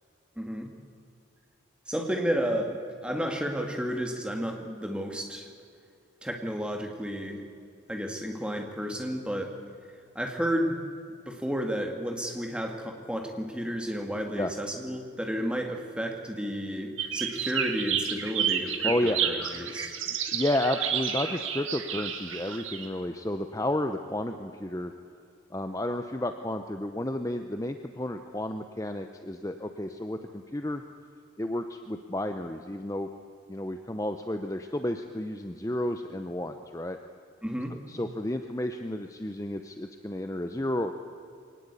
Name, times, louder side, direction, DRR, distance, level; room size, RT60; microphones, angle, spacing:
voice 1, 0.4-0.7 1.9-5.5 6.2-7.4 7.9-9.5 10.2-10.8 11.3-20.0 37.4-37.8, equal, 5° right, 3 dB, 2.0 m, -32 dB
sound 1, 17.0-22.9, right 8 dB, 90° right, 1.8 m, -31 dB
voice 2, 18.8-19.2 20.1-24.9 25.5-30.8 31.4-33.1 33.5-37.0 37.9-40.9, left 1 dB, 15° left, 7 dB, 0.7 m, -31 dB
23.0 x 18.5 x 8.3 m, 2.4 s
head